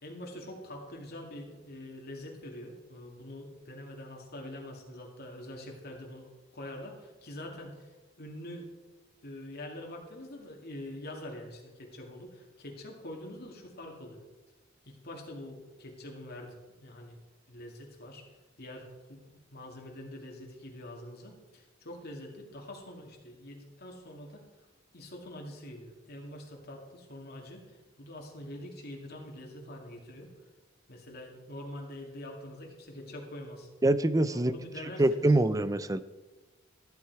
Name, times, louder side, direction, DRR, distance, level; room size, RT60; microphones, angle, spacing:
voice 1, 0.0-8.7 9.2-14.2 14.8-17.2 17.5-18.2 18.6-24.4 24.9-30.3 30.9-33.7 34.3-35.3, left 1 dB, 55° left, 0 dB, 2.3 m, -45 dB
voice 2, 33.8-34.5 35.0-36.0, right 1 dB, 15° right, 15 dB, 0.5 m, -24 dB
15.0 x 10.5 x 4.7 m, 1.2 s
head